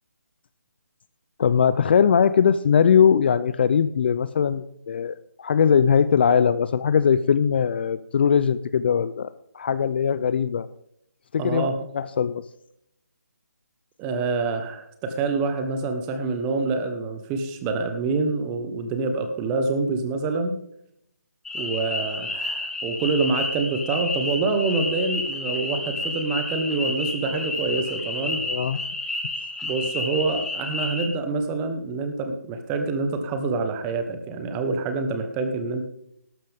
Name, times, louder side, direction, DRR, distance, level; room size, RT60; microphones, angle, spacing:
voice 1, 1.4-9.3 9.5-10.7 11.3-12.4 28.4-28.8, left 7 dB, 35° left, 15 dB, 0.4 m, -20 dB
voice 2, 11.4-11.7 14.0-20.6 21.5-28.4 29.6-35.9, right 3 dB, 15° right, 7 dB, 1.2 m, -26 dB
sound 1, 21.5-31.1, left 2 dB, 5° left, 1.3 m, -30 dB
13.0 x 12.5 x 3.6 m, 0.74 s
figure-of-eight pair, 155°, 9 cm